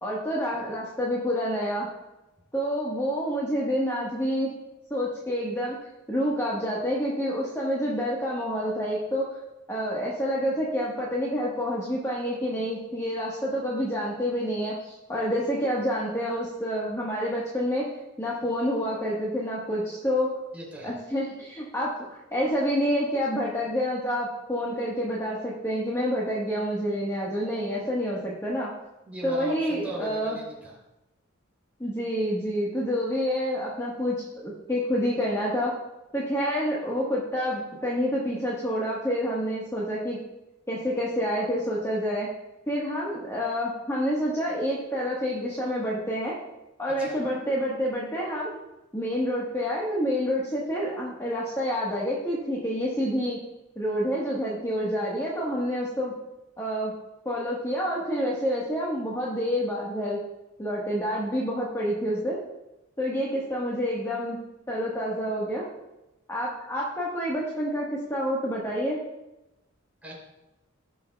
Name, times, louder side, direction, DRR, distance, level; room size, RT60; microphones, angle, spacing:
voice 1, 0.0-1.9 2.5-4.5 4.9-5.8 6.1-9.3 9.7-17.8 18.2-20.3 20.8-28.7 29.2-30.4 31.8-35.7 36.1-40.2 40.7-42.3 42.7-46.3 46.8-48.5 48.9-53.4 53.7-56.1 56.6-56.9 57.2-60.2 60.6-62.4 63.0-64.4 64.7-65.6 66.3-69.0, equal, 15° left, -6 dB, 1.5 m, -28 dB
voice 2, 20.5-21.0 29.0-30.8 47.0-47.3 70.0-70.1, right 1 dB, 10° right, -4 dB, 3.4 m, -38 dB
18.5 x 6.3 x 2.4 m, 0.96 s
head